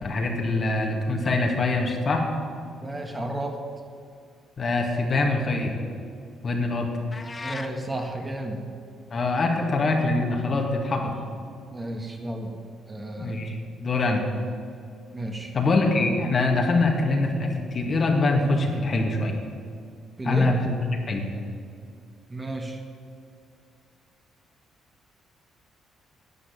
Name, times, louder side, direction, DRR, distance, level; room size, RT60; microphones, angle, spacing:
voice 1, 0.0-2.2 4.6-5.7 6.4-6.9 9.1-11.1 13.2-13.6 13.8-14.2 15.5-19.4 20.2-20.7 21.1-21.3, left 2 dB, 45° left, 2 dB, 2.1 m, -24 dB
voice 2, 2.8-3.7 7.4-8.6 11.7-12.5 12.9-13.3 15.1-15.5 20.2-20.5 22.3-22.8, right 1 dB, 20° right, 3 dB, 1.7 m, -32 dB
sound 1, 7.1-7.7, left 3 dB, 30° left, 1.0 m, -36 dB
11.5 x 8.7 x 8.8 m, 2.4 s
cardioid pair, 90°, 0 cm